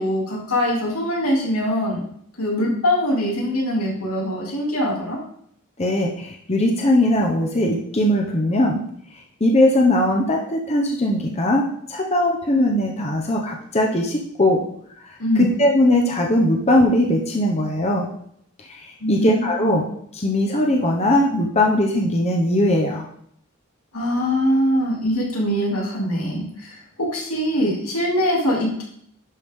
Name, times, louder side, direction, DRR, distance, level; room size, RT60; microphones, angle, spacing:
voice 1, 0.0-2.0 2.4-5.2 15.2-15.5 19.0-19.8 23.9-28.8, equal, 85° left, -2 dB, 2.7 m, -22 dB
voice 2, 5.8-8.8 9.4-14.6 15.4-18.1 18.6-19.8 20.1-23.1, left 1 dB, 30° left, 0 dB, 0.9 m, -20 dB
11.5 x 4.9 x 3.6 m, 0.67 s
head